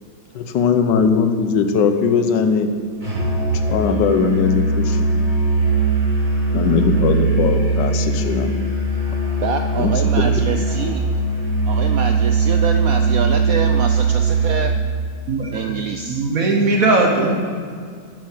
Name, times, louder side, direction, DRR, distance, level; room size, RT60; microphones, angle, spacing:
voice 1, 0.3-2.7 3.7-5.0 6.5-8.5 9.8-9.9 10.3-10.4, left 5 dB, 75° left, 7 dB, 1.4 m, -19 dB
Musical instrument, 3.0-14.9, right 3 dB, 25° right, 2.8 m, -20 dB
voice 2, 9.4-11.1 11.7-15.0 15.5-16.2, right 7 dB, 75° right, 6 dB, 0.8 m, -26 dB
voice 3, 15.3-15.7 16.0-17.4, right 2 dB, 55° right, 2 dB, 1.3 m, -18 dB
10.0 x 7.7 x 6.4 m, 2.1 s
omnidirectional pair, 2.0 m